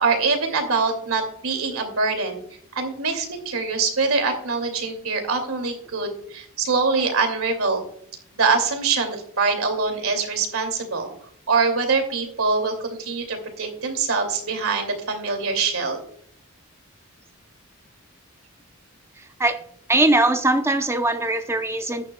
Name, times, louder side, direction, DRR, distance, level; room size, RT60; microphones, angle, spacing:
voice 1, 0.0-2.4 2.7-7.8 8.4-11.1 11.5-16.0, right 4 dB, 85° right, 5 dB, 2.5 m, -24 dB
voice 2, 19.2-19.6 19.9-22.1, right 2 dB, 10° right, 7 dB, 0.7 m, -21 dB
14.0 x 10.0 x 2.3 m, 0.65 s
head